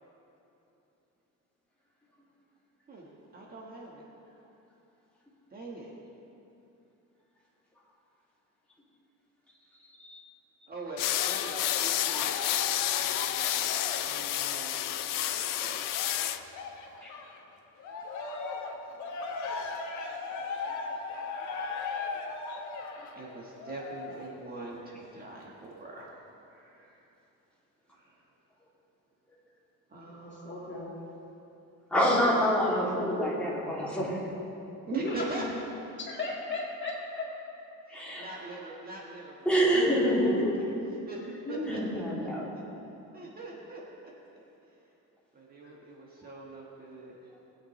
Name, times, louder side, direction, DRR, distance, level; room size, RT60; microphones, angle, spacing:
voice 1, 3.3-4.0 5.5-5.9 10.7-16.1 23.1-26.1 26.5-27.0 27.9-28.1 29.9-30.8 34.9-35.5 37.9-40.3 40.6-40.7 41.1-41.2 41.5-42.0 42.5-42.6 43.1-44.1 45.3-47.2, right 3 dB, 30° right, -3 dB, 1.4 m, -43 dB
sound 1, 11.0-16.4, left 12 dB, 80° left, 0.6 m, -30 dB
Cheering, 11.1-17.4 17.8-24.4 25.0-25.1, left 4 dB, 60° left, 1.3 m, -38 dB
voice 2, 30.1-30.9 34.9-35.5 36.0-37.2 40.2-40.5 41.5-41.7, left 2 dB, 35° left, -4 dB, 1.9 m, -35 dB
voice 3, 31.9-34.2 37.9-38.4 39.4-40.3 41.6-42.5, equal, 5° left, -8 dB, 2.6 m, -26 dB
20.0 x 8.6 x 3.2 m, 2.9 s
cardioid pair, 170°, 32 cm